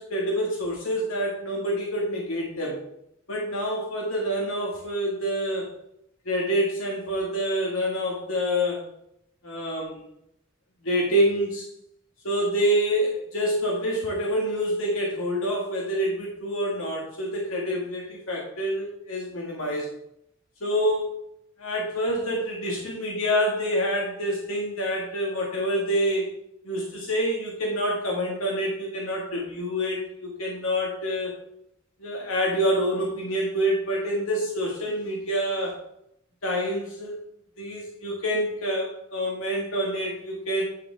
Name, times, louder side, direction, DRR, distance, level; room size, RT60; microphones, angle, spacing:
voice 1, 0.0-2.8 3.3-5.7 6.3-8.8 9.4-10.0 10.8-11.7 12.2-19.9 20.6-21.2 21.6-26.3 26.6-31.3 32.0-35.8 36.4-37.2 37.6-40.6, equal, 85° left, -2 dB, 2.1 m, -27 dB
11.5 x 7.1 x 3.6 m, 0.76 s
head